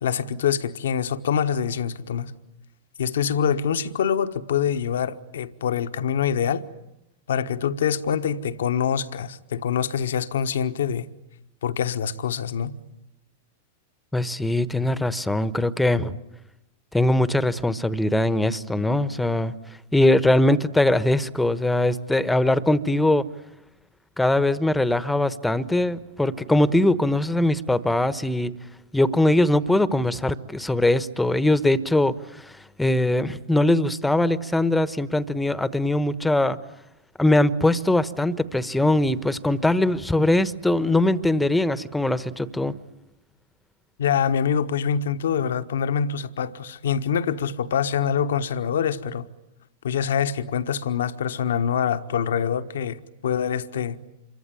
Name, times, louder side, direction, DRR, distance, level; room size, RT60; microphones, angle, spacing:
voice 1, 0.0-2.3 3.0-6.6 7.3-11.1 11.6-12.7 44.0-49.3 49.8-54.0, left 8 dB, 65° left, 1.3 m, -25 dB
voice 2, 14.1-16.2 16.9-19.5 19.9-23.3 24.2-28.5 28.9-36.6 37.2-42.7, left 1 dB, 5° left, 1.2 m, -21 dB
27.5 x 23.5 x 9.0 m
figure-of-eight pair, 95°, 0 cm